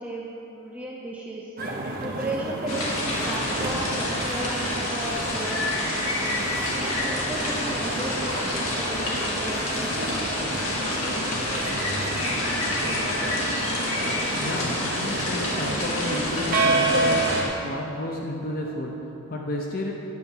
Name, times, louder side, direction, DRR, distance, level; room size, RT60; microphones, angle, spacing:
voice 1, 0.0-1.5 2.0-6.4 6.8-10.1, right 1 dB, 5° right, -4 dB, 0.6 m, -35 dB
sound 1, 1.6-17.4, right 2 dB, 40° right, 0.8 m, -30 dB
sound 2, 2.7-17.4, left 1 dB, 70° left, 2.1 m, -28 dB
voice 2, 14.2-19.9, left 1 dB, 40° left, 0 dB, 0.7 m, -32 dB
9.4 x 6.8 x 5.6 m, 3.0 s
head